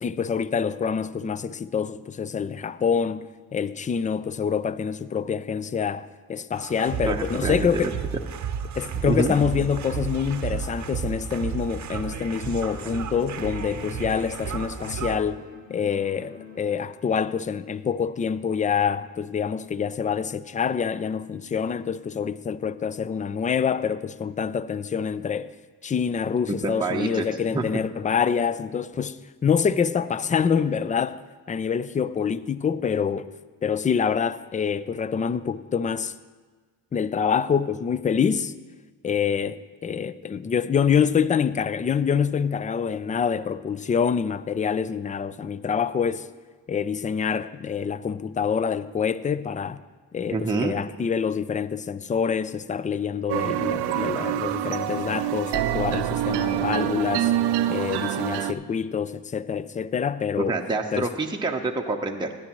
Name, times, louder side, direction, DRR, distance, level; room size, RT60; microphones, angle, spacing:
voice 1, 0.0-3.3 3.5-7.9 8.8-15.4 15.7-25.5 25.8-31.2 31.5-33.3 33.6-36.1 36.9-38.5 39.0-46.3 46.7-49.8 50.1-57.3 57.7-60.6 60.9-61.1, left 7 dB, 20° left, 0.4 m, -26 dB
sound 1, 6.5-15.2, right 7 dB, 40° right, 0.9 m, -32 dB
voice 2, 7.0-7.9 9.1-9.4 26.5-27.2 27.5-27.7 50.3-50.8 60.5-62.3, right 3 dB, 10° right, 0.8 m, -27 dB
sound 2, 12.0-14.4 14.7-17.1, left 5 dB, 40° left, 2.6 m, -46 dB
sound 3, 53.3-58.5, right 12 dB, 70° right, 0.6 m, -26 dB
16.5 x 10.0 x 3.0 m
supercardioid pair, 65°, 42 cm